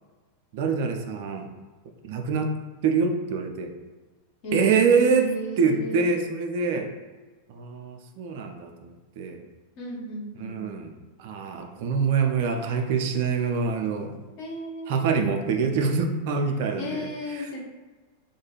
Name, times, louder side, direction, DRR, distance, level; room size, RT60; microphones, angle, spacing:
voice 1, 0.5-1.5 2.0-2.6 2.8-3.7 4.5-6.9 7.5-9.4 10.4-10.9 11.2-14.1 14.9-17.7, right 5 dB, 50° right, 4 dB, 0.3 m, -25 dB
voice 2, 4.4-6.1 9.8-10.6 14.4-15.3 16.8-17.7, right 1 dB, 45° left, -4 dB, 0.7 m, -34 dB
2.4 x 2.2 x 3.0 m, 1.3 s
figure-of-eight pair, 90°, 0 cm